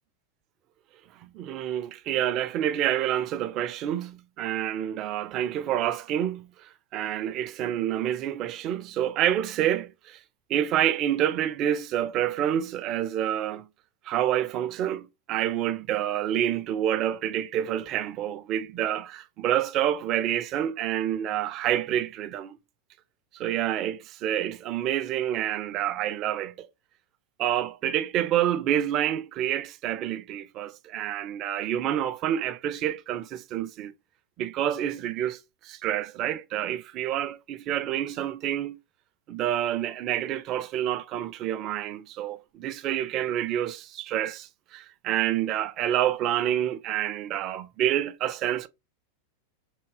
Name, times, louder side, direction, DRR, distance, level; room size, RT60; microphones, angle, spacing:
voice 1, 1.2-10.2 10.5-13.7 14.1-22.6 23.3-26.7 27.4-33.9 34.4-38.8 39.3-48.7, right 11 dB, 35° right, 0.4 m, -28 dB
3.5 x 2.8 x 2.9 m
figure-of-eight pair, 90°, 0 cm